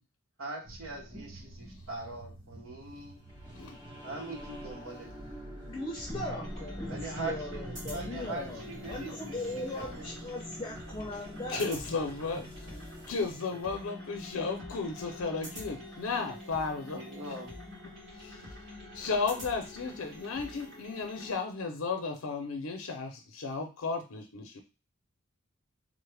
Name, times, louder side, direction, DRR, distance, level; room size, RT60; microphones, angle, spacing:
voice 1, 0.4-3.2 4.0-5.3 6.9-10.1 13.5-13.6 16.9-17.5, right 2 dB, 85° right, 1 dB, 0.9 m, -42 dB
sound 1, 0.6-13.3, equal, 20° right, 1.5 m, -46 dB
voice 2, 5.6-11.6 12.4-12.5, left 1 dB, 20° left, -1 dB, 0.5 m, -39 dB
sound 2, 6.0-21.3, left 1 dB, 50° right, 1.7 m, -46 dB
voice 3, 11.5-12.5 12.8-17.0 18.1-18.4 18.9-24.6, left 4 dB, 90° left, 4 dB, 0.6 m, -34 dB
3.3 x 2.1 x 3.2 m, 0.29 s
head